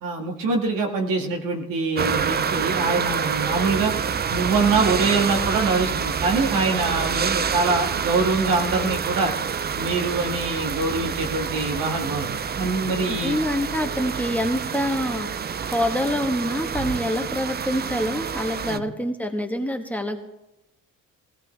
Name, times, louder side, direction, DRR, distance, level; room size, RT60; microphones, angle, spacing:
voice 1, 0.0-3.9 4.3-9.3 9.7-13.4 18.6-18.8, right 3 dB, 80° right, 1 dB, 2.1 m, -24 dB
sound 1, 2.0-18.8, right 7 dB, 30° right, 0.5 m, -27 dB
voice 2, 13.1-15.4 15.6-20.2, equal, 5° left, 4 dB, 1.3 m, -26 dB
17.5 x 15.5 x 3.4 m, 0.92 s
cardioid pair, 95°, 33 cm